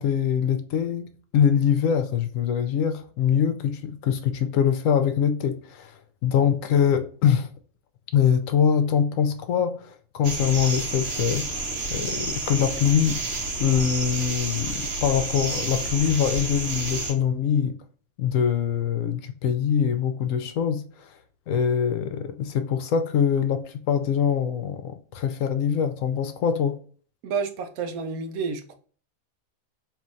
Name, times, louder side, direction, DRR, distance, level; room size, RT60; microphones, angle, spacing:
voice 1, 0.0-7.5 8.1-11.5 11.9-13.2 13.6-17.8 18.2-21.2 21.5-26.8, left 8 dB, 70° left, 0.9 m, -23 dB
sound 1, 10.2-17.1, right 2 dB, 55° right, 1.3 m, -30 dB
voice 2, 27.2-28.7, right 5 dB, 80° right, 1.2 m, -30 dB
4.5 x 3.1 x 2.6 m
omnidirectional pair, 1.5 m